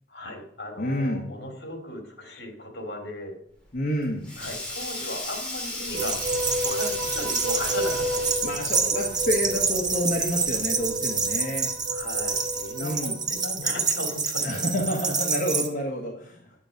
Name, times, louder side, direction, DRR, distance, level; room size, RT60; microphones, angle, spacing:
voice 1, 0.1-3.3 4.4-6.2 6.6-8.5 11.9-14.6, left 1 dB, 65° left, 4 dB, 2.8 m, -37 dB
voice 2, 0.8-1.3 3.7-4.3 8.4-11.7 12.7-13.2 14.4-16.4, equal, 50° left, 0 dB, 1.4 m, -28 dB
Sink (filling or washing), 3.6-8.8, left 1 dB, 5° left, 3.0 m, -35 dB
sound 1, 5.9-13.9, right 1 dB, 55° right, 3.8 m, -33 dB
sound 2, 6.0-15.7, right 5 dB, 25° right, 1.1 m, -28 dB
9.6 x 7.2 x 5.2 m, 0.67 s
head